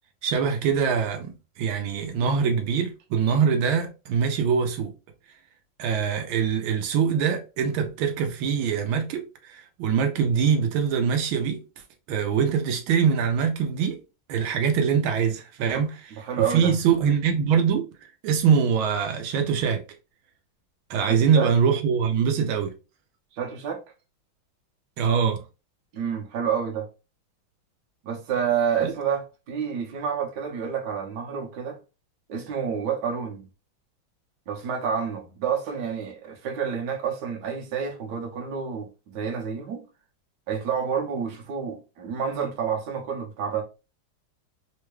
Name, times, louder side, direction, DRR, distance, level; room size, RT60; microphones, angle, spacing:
voice 1, 0.2-4.9 5.8-11.6 12.1-14.0 14.3-16.0 16.4-19.8 20.9-22.7 25.0-25.4 28.8-28.9, right 6 dB, 85° right, 1.4 m, -23 dB
voice 2, 16.1-16.7 21.1-21.5 23.3-23.8 25.9-26.9 28.0-31.8 32.3-33.5 34.5-39.8 40.5-43.6, right 7 dB, 65° right, 1.3 m, -29 dB
3.6 x 2.2 x 3.1 m
omnidirectional pair, 2.2 m